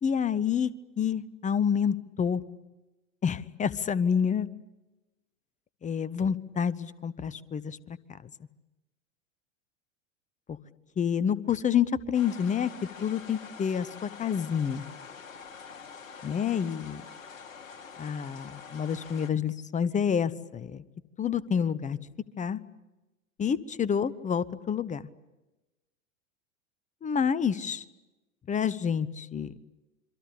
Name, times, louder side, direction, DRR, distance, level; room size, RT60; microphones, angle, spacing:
voice 1, 0.0-0.7 1.0-2.4 3.2-4.5 5.8-8.0 8.2-8.3 10.5-10.6 11.0-14.8 16.2-17.0 18.0-20.8 21.2-22.0 22.4-22.6 23.4-25.0 27.0-27.8 28.5-29.5, left 7 dB, 20° left, 18 dB, 0.9 m, -28 dB
sound 1, 12.1-19.3, left 6 dB, 80° left, 1.8 m, -46 dB
27.0 x 24.0 x 8.5 m, 1.1 s
hypercardioid pair, 95°, 39 cm